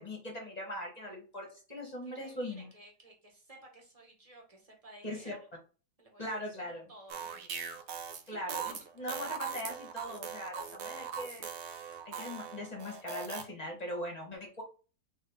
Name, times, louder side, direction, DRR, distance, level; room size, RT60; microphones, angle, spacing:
voice 1, 0.0-2.7 5.0-5.3 6.2-6.9 8.3-11.5 12.1-14.6, left 1 dB, 25° left, 1 dB, 1.1 m, -40 dB
voice 2, 2.0-5.4 6.0-6.6 6.9-7.7 8.2-8.7, right 1 dB, 20° right, 0 dB, 1.3 m, -55 dB
Turkic Jews Harps Improv, 7.1-13.4, right 7 dB, 60° right, 0.7 m, -40 dB
4.1 x 3.5 x 3.4 m, 0.36 s
omnidirectional pair, 1.9 m